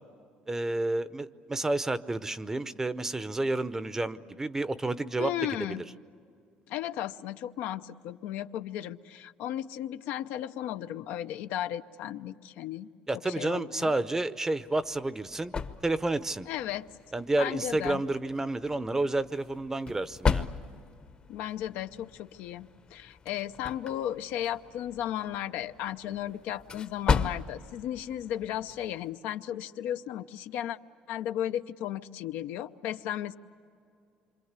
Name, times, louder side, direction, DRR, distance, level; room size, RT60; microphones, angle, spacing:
voice 1, 0.5-5.3 5.8-5.9 13.1-15.5 15.8-16.5 17.1-20.5, right 2 dB, 15° right, 14 dB, 0.7 m, -30 dB
voice 2, 5.2-5.8 6.7-12.9 13.4-13.9 16.5-16.8 17.4-18.0 21.3-30.8 31.1-33.3, left 11 dB, 80° left, 9 dB, 0.7 m, -35 dB
sound 1, 14.6-29.1, left 5 dB, 30° left, 0.8 m, -36 dB
27.0 x 26.0 x 8.2 m, 2.4 s
cardioid pair, 125°, 3 cm